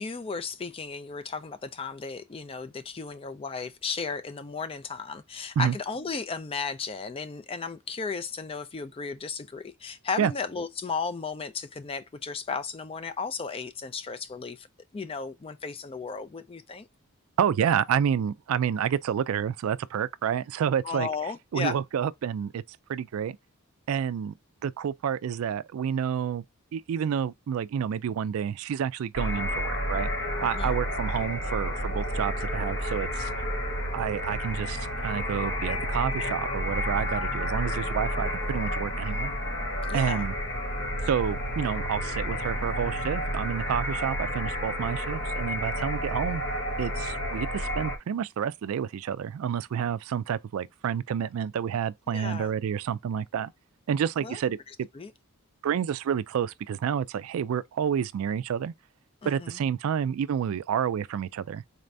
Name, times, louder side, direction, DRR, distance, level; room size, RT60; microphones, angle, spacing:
voice 1, 0.0-14.7 14.9-16.9 20.8-21.8 30.5-30.7 39.8-40.3 52.1-52.5 54.2-54.4 54.9-55.1 59.2-59.6, left 5 dB, 25° left, 0.3 m, -35 dB
voice 2, 17.4-21.1 21.5-22.6 22.9-23.4 23.9-24.3 24.6-26.4 26.7-30.1 30.4-33.3 33.9-39.3 39.9-40.3 41.1-46.4 46.8-53.5 53.9-54.9 55.6-58.7 59.3-61.6, right 8 dB, 75° right, 0.3 m, -29 dB
sound 1, 29.1-48.0, equal, 60° left, 1.3 m, -30 dB
4.1 x 2.6 x 3.3 m
head